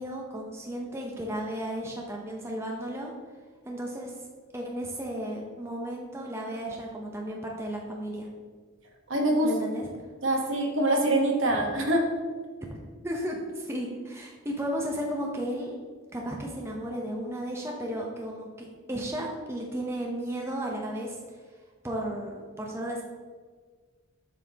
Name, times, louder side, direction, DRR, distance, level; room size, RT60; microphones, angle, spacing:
voice 1, 0.0-3.1 3.7-4.1 4.5-8.3 9.4-9.9 13.0-15.7 16.1-21.2 21.8-23.0, right 1 dB, 10° right, -1 dB, 0.6 m, -34 dB
voice 2, 9.1-9.5 10.2-12.1, right 1 dB, 65° right, 1 dB, 1.1 m, -24 dB
7.6 x 5.6 x 2.8 m, 1.5 s
head